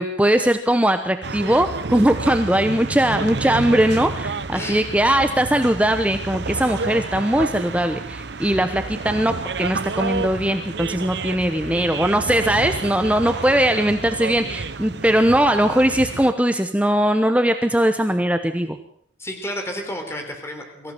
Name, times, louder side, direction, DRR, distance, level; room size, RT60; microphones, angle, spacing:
voice 1, 0.0-18.8, right 1 dB, 5° right, 8 dB, 1.0 m, -20 dB
sound 1, 1.2-16.3, right 3 dB, 60° right, 0.8 m, -30 dB
voice 2, 4.5-5.0 19.2-20.9, left 1 dB, 15° left, 3 dB, 3.7 m, -31 dB
24.0 x 15.0 x 7.8 m, 0.64 s
head